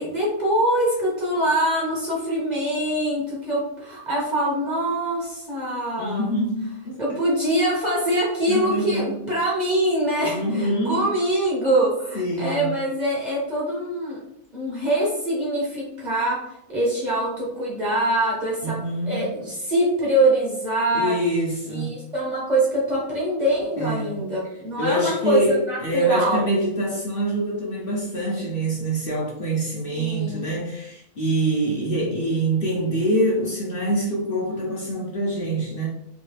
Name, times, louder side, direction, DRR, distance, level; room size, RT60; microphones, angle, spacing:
voice 1, 0.0-6.3 7.0-14.2 14.5-16.4 16.7-18.8 19.1-21.2 21.7-26.5 29.9-30.5, right 1 dB, 35° right, -5 dB, 1.0 m, -24 dB
voice 2, 6.0-7.2 8.5-9.2 10.2-11.0 12.1-12.7 18.6-19.3 20.9-22.0 23.8-24.2 24.8-35.9, right 1 dB, 45° left, -5 dB, 0.9 m, -25 dB
3.1 x 2.8 x 3.2 m, 0.80 s
omnidirectional pair, 1.4 m